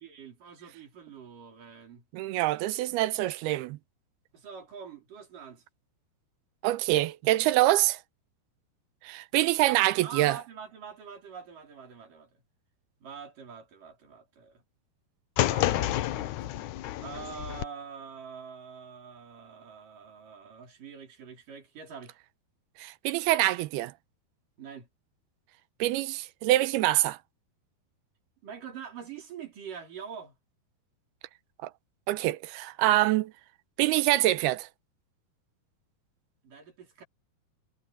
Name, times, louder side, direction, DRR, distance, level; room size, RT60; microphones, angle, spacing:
voice 1, 0.0-2.0 4.3-5.6 9.5-12.4 13.0-14.6 15.4-16.7 17.0-22.2 24.6-24.9 28.4-30.4 36.4-37.0, right 7 dB, 60° right, 5.9 m, -45 dB
voice 2, 2.1-3.8 6.6-8.0 9.0-10.4 22.8-23.9 25.8-27.2 31.6-31.7 32.1-33.3 33.8-34.7, right 16 dB, 85° right, 2.7 m, -25 dB
sound 1, 15.4-17.6, left 14 dB, 75° left, 1.9 m, -29 dB
omnidirectional pair, 4.5 m